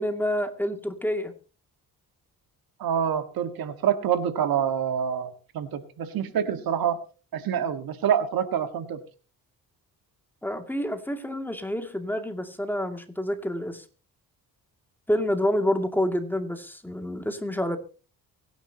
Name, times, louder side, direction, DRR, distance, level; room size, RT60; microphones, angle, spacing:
voice 1, 0.0-1.3 10.4-13.8 15.1-17.8, left 1 dB, 5° left, 6 dB, 2.3 m, -28 dB
voice 2, 2.8-7.0 7.3-9.0, right 8 dB, 75° right, 9 dB, 1.7 m, -26 dB
24.0 x 10.5 x 2.9 m, 0.35 s
cardioid pair, 100°, 36 cm